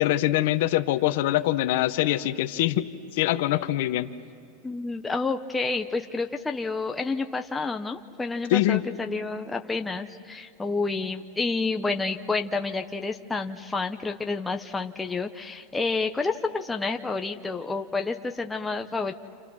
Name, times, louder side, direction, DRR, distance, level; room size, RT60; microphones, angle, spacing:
voice 1, 0.0-4.1 8.5-8.8, left 15 dB, 65° left, 8 dB, 0.9 m, -24 dB
voice 2, 4.6-19.1, left 3 dB, 10° left, 4 dB, 0.6 m, -29 dB
28.5 x 28.5 x 6.2 m, 2.2 s
supercardioid pair, 150°, 0 cm